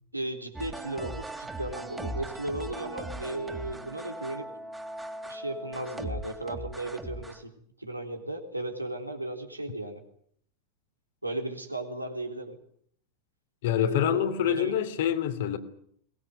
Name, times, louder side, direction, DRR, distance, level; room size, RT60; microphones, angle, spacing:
voice 1, 0.1-4.5 5.2-7.5 7.8-10.0 11.2-12.6 13.7-14.8, right 1 dB, 85° right, 3.5 m, -35 dB
sound 1, 0.5-7.4, right 1 dB, 10° right, 3.0 m, -39 dB
voice 2, 13.6-15.6, left 10 dB, 55° left, 2.8 m, -26 dB
22.5 x 20.5 x 9.4 m
figure-of-eight pair, 90°, 0 cm